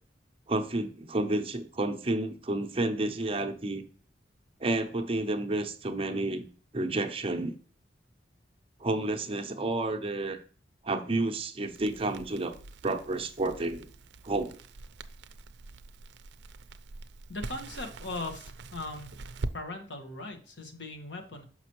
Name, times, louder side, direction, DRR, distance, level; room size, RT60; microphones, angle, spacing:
voice 1, 0.5-3.8 4.6-6.4 6.7-7.5 8.8-10.4 10.8-12.5 12.8-13.9 14.2-14.6, right 2 dB, 30° right, 6 dB, 0.7 m, -30 dB
Crackle, 11.7-19.6, right 3 dB, 70° right, 0.5 m, -43 dB
voice 2, 17.3-19.1 19.5-21.4, left 2 dB, 85° left, 5 dB, 1.3 m, -39 dB
5.9 x 5.9 x 3.0 m, 0.43 s
head